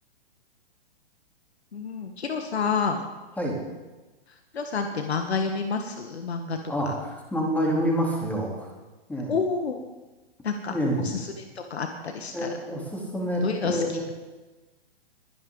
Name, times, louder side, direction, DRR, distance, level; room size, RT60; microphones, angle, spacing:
voice 1, 1.7-3.1 4.5-6.6 6.8-6.9 9.3-9.8 10.4-10.7 11.0-11.3 11.5-12.5 13.4-13.8, left 5 dB, 80° left, 5 dB, 1.6 m, -29 dB
voice 2, 6.7-8.7 9.1-9.3 10.7-11.0 12.3-14.0, equal, 5° left, -2 dB, 3.4 m, -27 dB
21.5 x 11.0 x 4.0 m, 1.2 s
hypercardioid pair, 130°, 31 cm